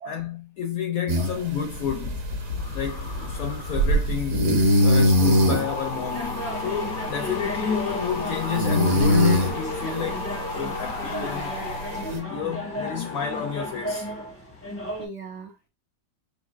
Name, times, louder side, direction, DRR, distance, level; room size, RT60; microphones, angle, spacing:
voice 1, 0.1-2.2 2.7-4.5 4.8-10.3 10.5-11.6 12.0-14.1, left 8 dB, 70° left, 0.8 m, -30 dB
sound 1, 1.1-12.2, equal, 50° right, 1.2 m, -24 dB
sound 2, 1.6-14.3 14.6-15.0, left 3 dB, 90° left, 0.5 m, -34 dB
sound 3, 5.3-15.1, equal, 15° left, 0.5 m, -36 dB
voice 2, 15.0-15.7, right 4 dB, 75° right, 0.6 m, -40 dB
4.7 x 2.6 x 2.4 m
omnidirectional pair, 1.9 m